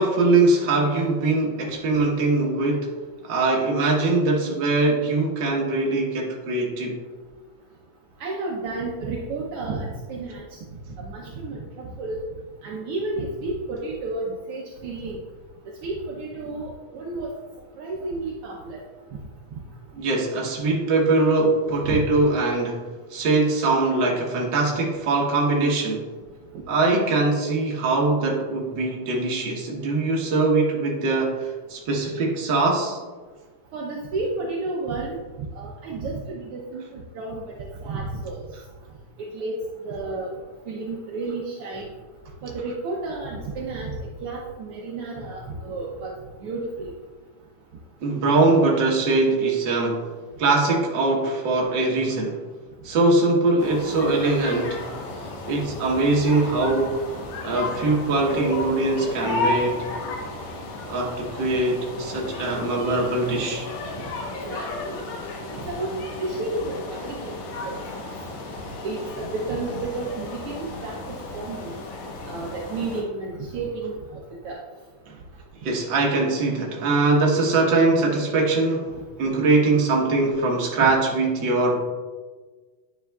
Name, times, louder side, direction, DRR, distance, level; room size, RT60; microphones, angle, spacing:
voice 1, 0.0-2.9 3.2-7.0 20.0-22.8 23.1-26.1 26.7-33.0 48.0-50.1 50.4-52.4 52.8-54.8 55.5-57.0 57.4-59.9 60.8-63.7 75.1-75.2 75.6-78.9 79.2-81.8, right 2 dB, 50° right, -1 dB, 1.4 m, -22 dB
voice 2, 8.2-10.4 11.0-12.2 12.6-15.2 15.7-17.3 17.8-18.8 21.8-22.0 26.5-26.6 33.7-35.2 35.6-38.4 39.3-40.3 40.7-41.9 42.4-43.9 44.2-46.1 46.4-46.9 64.3-65.0 65.5-65.9 66.2-67.3 67.6-67.8 68.8-71.8 72.3-74.6, right 3 dB, 75° right, -2 dB, 1.3 m, -31 dB
sound 1, 53.6-73.0, left 2 dB, 75° left, 2.4 m, -33 dB
9.6 x 6.1 x 2.3 m, 1.4 s
omnidirectional pair, 3.3 m